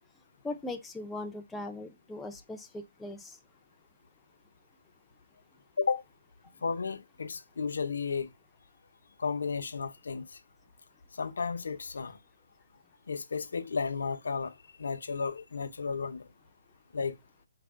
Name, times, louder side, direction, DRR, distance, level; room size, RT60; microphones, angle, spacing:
voice 1, 0.4-3.4, left 2 dB, 5° left, 0.4 m, -39 dB
voice 2, 6.6-8.3 9.2-10.3 11.1-12.2 13.1-16.3 16.9-17.2, left 5 dB, 80° left, 0.6 m, -33 dB
4.6 x 2.1 x 3.4 m
hypercardioid pair, 165°, 0 cm